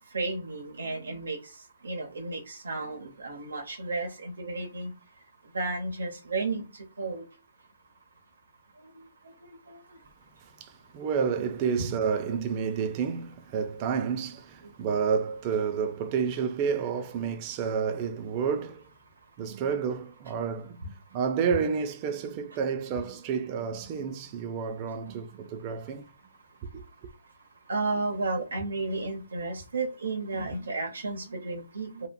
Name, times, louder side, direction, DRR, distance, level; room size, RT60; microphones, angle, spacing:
voice 1, 0.1-1.4 1.8-4.9 5.5-6.6 7.0-7.2 9.7-9.8 11.8-11.9 27.7-32.1, right 3 dB, 85° right, 0.8 m, -32 dB
voice 2, 10.4-18.9 19.4-26.1 26.7-26.8, right 6 dB, 30° right, 0.4 m, -30 dB
2.9 x 2.4 x 2.2 m
hypercardioid pair, 150°, 0 cm